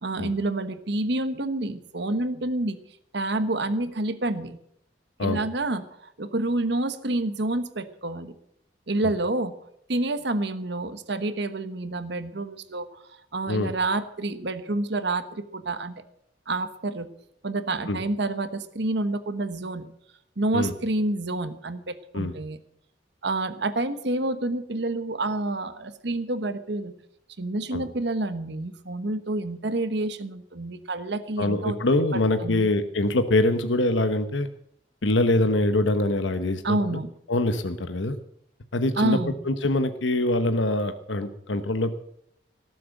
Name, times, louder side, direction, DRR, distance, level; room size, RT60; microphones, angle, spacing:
voice 1, 0.0-2.8 3.1-4.6 5.2-5.8 6.2-8.3 8.9-9.5 9.9-13.0 13.3-15.9 16.5-17.1 17.4-19.9 20.4-22.6 23.2-26.9 27.4-31.8 32.4-32.7 36.6-37.1 39.0-39.4, right 2 dB, 65° right, 11 dB, 1.2 m, -28 dB
voice 2, 31.4-34.5 35.0-37.0 37.3-38.2 38.7-39.2 39.4-41.9, left 2 dB, 85° left, 9 dB, 1.0 m, -24 dB
18.5 x 7.7 x 7.9 m, 0.74 s
head